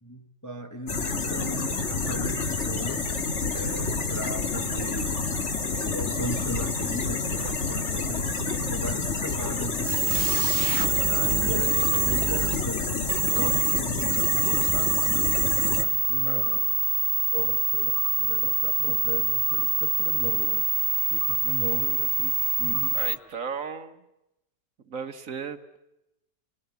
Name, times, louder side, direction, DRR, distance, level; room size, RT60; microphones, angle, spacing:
voice 1, 0.0-5.2 5.7-10.4 11.1-15.4 15.8-16.5 17.3-20.7 21.1-23.0, right 1 dB, 15° left, 1.0 m, -37 dB
sound 1, 0.9-15.8, left 3 dB, 45° left, 1.8 m, -29 dB
sound 2, 9.9-23.2, right 5 dB, 35° right, 1.1 m, -25 dB
sound 3, 10.3-10.4 11.8-12.0 13.4-13.5 14.9-15.0 16.4-16.6 18.0-18.1 19.5-19.6 21.2-21.4 22.7-22.9, right 13 dB, 90° right, 1.9 m, -38 dB
voice 2, 16.2-16.8 22.9-24.0 24.9-25.8, right 6 dB, 55° right, 1.6 m, -36 dB
28.0 x 21.0 x 8.3 m
omnidirectional pair, 1.8 m